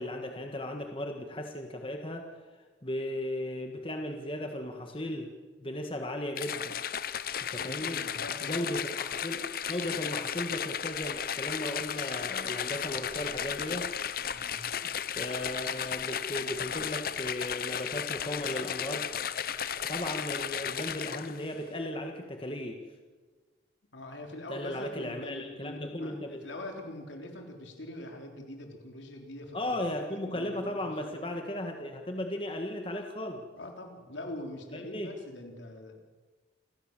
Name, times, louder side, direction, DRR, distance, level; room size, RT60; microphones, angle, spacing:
voice 1, 0.0-2.3 2.8-5.3 5.6-6.8 7.5-8.0 8.4-13.9 14.8-19.1 19.9-22.8 24.5-26.5 29.5-33.5 34.7-35.2, left 1 dB, 30° left, 3 dB, 1.7 m, -36 dB
sound 1, 6.4-21.5, left 8 dB, 50° left, 0.7 m, -34 dB
voice 2, 7.6-8.8 14.3-14.6 23.9-31.3 33.5-35.9, left 1 dB, 80° left, 3 dB, 3.8 m, -44 dB
28.5 x 16.0 x 7.4 m, 1.3 s
head